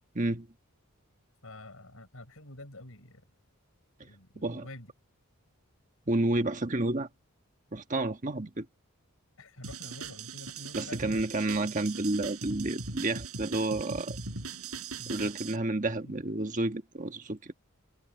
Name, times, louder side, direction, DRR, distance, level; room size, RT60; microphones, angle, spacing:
voice 1, 0.1-0.5 4.4-4.7 6.1-7.1 7.7-8.6 10.7-14.2 15.1-17.5, right 2 dB, 35° right, 1.4 m, -30 dB
voice 2, 1.4-3.2 4.0-4.9 9.4-11.2 15.0-15.3 15.8-16.2, left 1 dB, 70° left, 7.1 m, -48 dB
sound 1, 9.6-15.6, right 4 dB, 85° right, 5.4 m, -40 dB
head